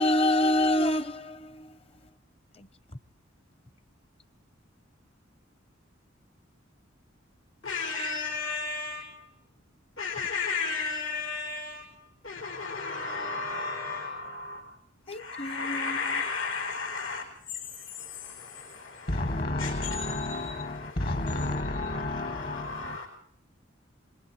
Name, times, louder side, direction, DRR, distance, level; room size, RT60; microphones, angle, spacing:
voice 1, 0.0-1.7 7.9-8.1 15.1-16.0, left 1 dB, 30° left, 0.8 m, -26 dB
voice 2, 7.6-9.3 10.0-14.7 15.1-21.4 21.9-23.0, left 4 dB, 90° left, 4.5 m, -35 dB
voice 3, 19.1-23.0, left 2 dB, 50° left, 1.6 m, -31 dB
26.5 x 22.0 x 4.4 m
head